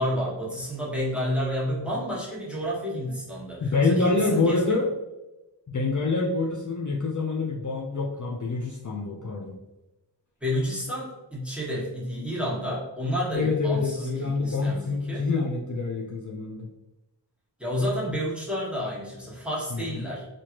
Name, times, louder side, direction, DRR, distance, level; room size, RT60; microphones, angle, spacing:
voice 1, 0.0-4.8 10.4-15.3 17.6-20.3, equal, 5° right, -6 dB, 1.2 m, -30 dB
voice 2, 3.6-4.9 5.7-9.6 13.3-16.7 19.7-20.1, left 3 dB, 45° left, -2 dB, 0.5 m, -26 dB
3.1 x 2.5 x 2.9 m, 1.0 s
wide cardioid pair, 40°, 44 cm